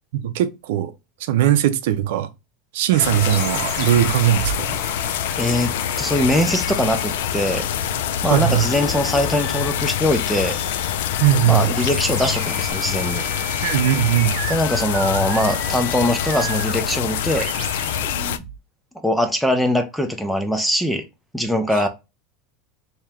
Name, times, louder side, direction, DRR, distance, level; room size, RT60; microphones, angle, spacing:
voice 1, 0.1-0.9 1.2-2.3 2.7-4.7 8.2-8.7 11.2-11.7 13.6-14.4 21.8-21.9, right 12 dB, 70° right, 0.5 m, -19 dB
sound 1, 2.9-12.7, left 4 dB, 35° left, 1.0 m, -37 dB
sound 2, 3.0-18.4, left 10 dB, 80° left, 0.3 m, -25 dB
sound 3, 3.3-18.6, right 7 dB, 45° right, 1.0 m, -36 dB
voice 2, 5.4-7.7 8.2-10.6 11.5-13.2 14.5-17.5 19.0-21.0 21.3-21.9, left 1 dB, ahead, 0.5 m, -22 dB
3.5 x 2.9 x 3.3 m
supercardioid pair, 165°, 0 cm